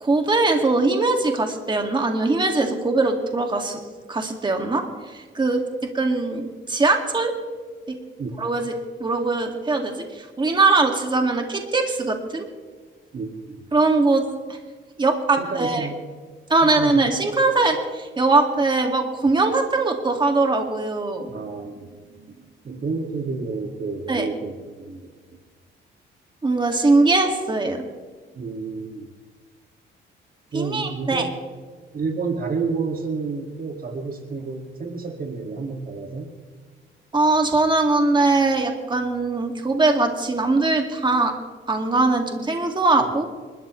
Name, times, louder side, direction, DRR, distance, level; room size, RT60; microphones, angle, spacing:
voice 1, 0.0-3.8 4.1-7.3 8.4-8.7 9.0-12.4 13.7-14.2 14.5-14.6 15.0-15.9 16.5-21.3 24.1-24.2 26.4-27.8 30.5-31.3 37.1-41.3 41.7-43.3, right 3 dB, 25° right, 3 dB, 2.1 m, -21 dB
voice 2, 13.1-13.6 15.4-16.0 16.6-17.1 21.3-25.1 28.4-29.1 30.5-31.2 31.9-36.3, right 4 dB, 45° right, 4 dB, 2.1 m, -30 dB
28.0 x 13.0 x 3.2 m, 1.5 s
cardioid pair, 90°, 20 cm